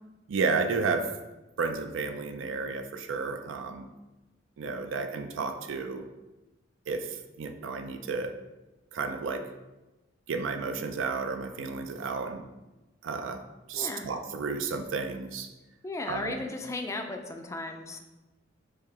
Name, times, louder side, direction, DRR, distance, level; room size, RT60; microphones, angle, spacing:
voice 1, 0.3-1.1 1.6-3.9 4.6-6.0 6.9-8.3 8.9-9.5 10.3-12.5 13.0-13.4 13.7-15.5 16.1-16.4, right 4 dB, 75° right, 7 dB, 0.4 m, -32 dB
voice 2, 13.7-14.1 15.8-18.0, left 2 dB, 15° left, 4 dB, 0.3 m, -35 dB
4.8 x 2.7 x 3.5 m, 1.1 s
head